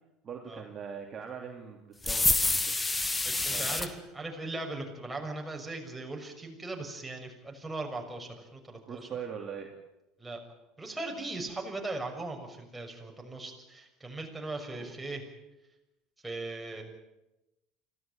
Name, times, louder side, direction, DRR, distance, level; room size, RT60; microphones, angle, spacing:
voice 1, 0.2-2.8 3.5-3.8 8.9-9.7 14.8-14.9, right 7 dB, 35° right, 1 dB, 3.1 m, -41 dB
sound 1, 2.0-3.9, left 3 dB, 15° left, 1.8 m, -27 dB
voice 2, 2.9-9.1 10.2-10.4 10.8-15.2 16.2-16.8, right 2 dB, 10° right, 1 dB, 6.3 m, -39 dB
25.0 x 16.0 x 9.2 m, 0.96 s
figure-of-eight pair, 70°, 0 cm